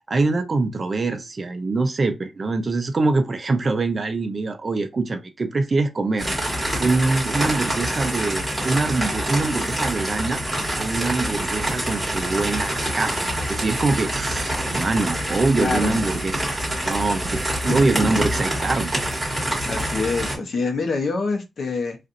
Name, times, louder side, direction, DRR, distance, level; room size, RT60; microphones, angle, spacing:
voice 1, 0.0-6.3 6.8-10.4 10.8-19.0 20.3-20.4, right 3 dB, 30° right, 0.4 m, -24 dB
sound 1, 6.2-20.4, right 1 dB, ahead, 1.4 m, -26 dB
voice 2, 15.6-16.0 17.7-18.1 19.7-22.0, left 4 dB, 50° left, 0.8 m, -26 dB
4.2 x 2.5 x 2.5 m
wide cardioid pair, 175°, 0 cm